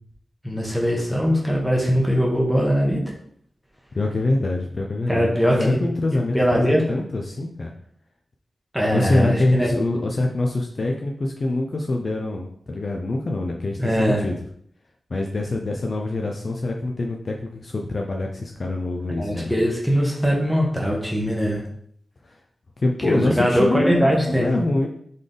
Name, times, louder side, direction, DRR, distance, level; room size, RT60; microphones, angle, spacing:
voice 1, 0.4-3.0 5.1-5.8 6.3-6.8 8.7-9.7 13.8-14.2 19.2-21.6 23.0-24.6, equal, ahead, -2 dB, 0.9 m, -21 dB
voice 2, 3.9-7.7 8.9-14.3 15.1-19.5 22.2-22.4 22.8-24.9, left 2 dB, 50° left, 1 dB, 0.5 m, -25 dB
4.0 x 3.3 x 3.8 m, 0.64 s
wide cardioid pair, 130°, 0 cm